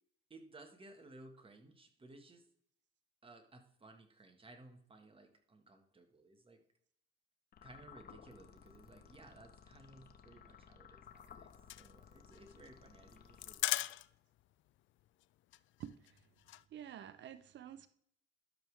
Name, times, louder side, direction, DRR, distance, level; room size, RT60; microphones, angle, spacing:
voice 1, 0.3-2.5 3.2-6.6 7.6-11.5 11.8-14.0, right 2 dB, 25° right, 5 dB, 1.8 m, -58 dB
sound 1, 7.5-14.0, left 7 dB, 50° left, 1.1 m, -58 dB
sound 2, 11.1-14.4 14.7-14.8 15.1-15.2 15.5-16.6, left 15 dB, 75° left, 0.4 m, -40 dB
voice 2, 15.8-16.2 16.7-17.9, right 10 dB, 65° right, 13 dB, 0.7 m, -49 dB
12.0 x 7.0 x 3.5 m, 0.66 s
cardioid pair, 90°, 20 cm